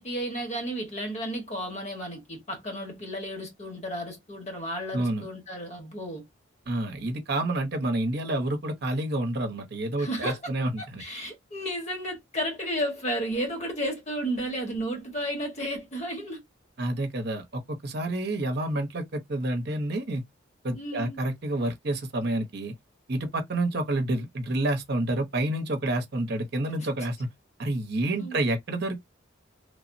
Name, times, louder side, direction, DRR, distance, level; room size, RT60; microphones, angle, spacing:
voice 1, 0.0-6.2 10.0-10.5 10.8-16.4 20.7-21.2 26.8-26.9 28.2-28.4, equal, 35° left, 1.1 m, -33 dB
voice 2, 4.9-5.2 6.7-11.0 16.8-20.2 20.6-22.7 23.1-27.3 27.6-29.0, right 1 dB, 55° right, 0.8 m, -29 dB
3.3 x 2.1 x 2.5 m
head